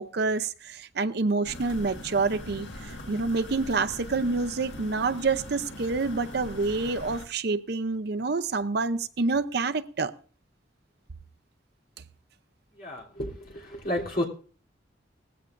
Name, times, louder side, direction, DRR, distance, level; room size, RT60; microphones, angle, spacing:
voice 1, 0.0-10.1, right 3 dB, 60° right, 10 dB, 0.7 m, -27 dB
sound 1, 1.4-7.3, left 1 dB, 75° left, 1.8 m, -41 dB
voice 2, 12.7-14.2, left 1 dB, 50° left, -2 dB, 3.3 m, -31 dB
19.5 x 15.5 x 2.6 m, 0.42 s
head